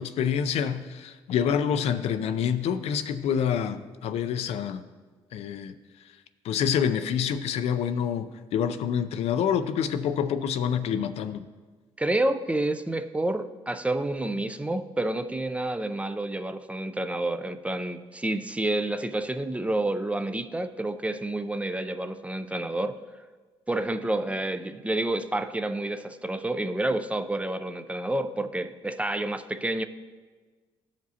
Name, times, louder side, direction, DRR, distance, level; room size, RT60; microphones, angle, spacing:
voice 1, 0.0-4.8 5.3-5.7 6.4-11.5, left 8 dB, 70° left, 0.4 m, -27 dB
voice 2, 12.0-23.0 23.7-29.8, right 1 dB, 10° right, 0.4 m, -29 dB
14.0 x 5.0 x 2.8 m
cardioid pair, 85°, 11 cm